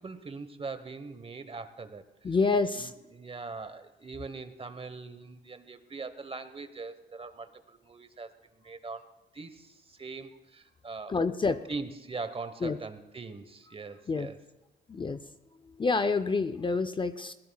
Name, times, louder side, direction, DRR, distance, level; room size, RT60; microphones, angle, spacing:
voice 1, 0.0-2.3 2.6-9.0 9.3-11.2 11.7-14.4, right 4 dB, 30° right, 10 dB, 1.1 m, -41 dB
voice 2, 2.2-2.9 11.1-11.6 12.6-12.8 14.1-14.3 14.9-15.2 15.8-17.3, left 4 dB, 25° left, 11 dB, 0.5 m, -27 dB
20.5 x 17.5 x 2.3 m, 0.98 s
cardioid pair, 90°, 20 cm